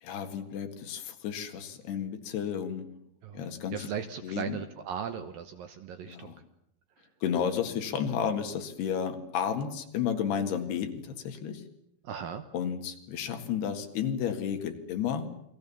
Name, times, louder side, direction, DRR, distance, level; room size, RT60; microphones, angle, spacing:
voice 1, 0.0-2.9 3.3-3.9 4.2-4.6 6.1-6.4 7.2-11.6 12.5-15.3, left 8 dB, 70° left, 6 dB, 3.7 m, -32 dB
voice 2, 3.7-6.3 12.0-12.4, right 8 dB, 70° right, 9 dB, 2.4 m, -37 dB
29.5 x 21.5 x 7.1 m, 0.80 s
omnidirectional pair, 5.1 m